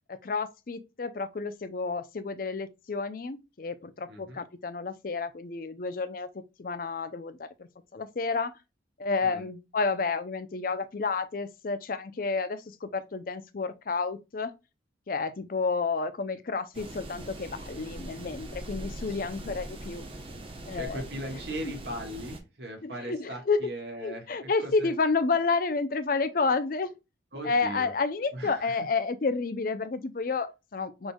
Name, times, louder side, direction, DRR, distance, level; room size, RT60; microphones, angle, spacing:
voice 1, 0.1-8.5 9.0-14.5 15.1-20.0 20.7-21.0 21.3-21.4 22.8-23.7 24.0-26.9 27.4-31.1, left 4 dB, 45° left, 0.5 m, -30 dB
voice 2, 4.1-4.4 9.2-9.4 20.7-24.9 27.3-27.9 28.3-28.7, right 1 dB, 60° right, 1.5 m, -39 dB
sound 1, 16.7-22.4, right 1 dB, 30° right, 0.9 m, -41 dB
6.2 x 3.3 x 2.2 m
head